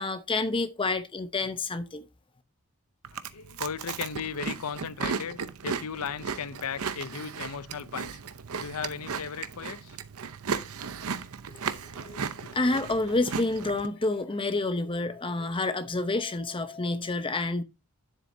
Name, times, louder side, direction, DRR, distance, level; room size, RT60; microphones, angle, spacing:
voice 1, 0.0-2.0 11.5-11.6 12.0-17.6, left 2 dB, 25° left, 0.8 m, -29 dB
Chewing mastication, 3.0-13.9, right 6 dB, 75° right, 0.7 m, -36 dB
voice 2, 3.1-8.2 8.6-9.9 13.9-14.3, left 6 dB, 80° left, 0.6 m, -36 dB
9.8 x 7.6 x 2.7 m
head